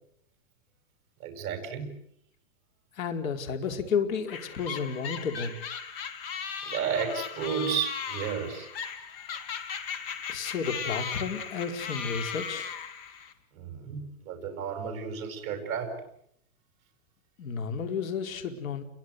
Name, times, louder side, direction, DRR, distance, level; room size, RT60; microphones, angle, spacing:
voice 1, 1.2-1.9 6.6-8.7 13.5-16.0, right 7 dB, 30° right, 4 dB, 6.3 m, -32 dB
voice 2, 2.9-5.6 10.3-12.7 17.4-18.8, left 5 dB, 75° left, 6 dB, 4.6 m, -32 dB
sound 1, 4.3-13.3, left 7 dB, 45° left, 3.0 m, -37 dB
30.0 x 22.5 x 8.1 m, 0.72 s
supercardioid pair, 170°, 41 cm